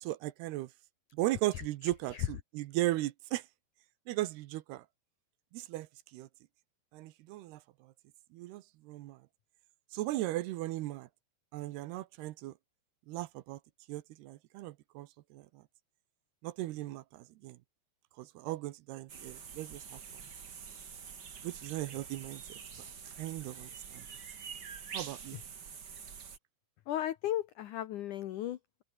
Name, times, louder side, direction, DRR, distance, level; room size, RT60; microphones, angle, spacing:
voice 1, 0.0-0.7 1.1-3.4 4.1-4.8 5.5-5.9 6.1-6.3 6.9-7.6 8.3-9.2 9.9-11.1 11.5-12.5 13.1-13.6 13.9-15.5 16.4-17.6 18.2-20.0 21.4-22.4 23.1-24.1 24.9-25.4, right 16 dB, 80° right, 2.7 m, -37 dB
voice 2, 1.5-2.3 25.3-25.4 26.9-28.8, left 12 dB, 85° left, 1.7 m, -36 dB
sound 1, 19.1-26.4, right 6 dB, 50° right, 1.2 m, -46 dB
omnidirectional pair, 5.0 m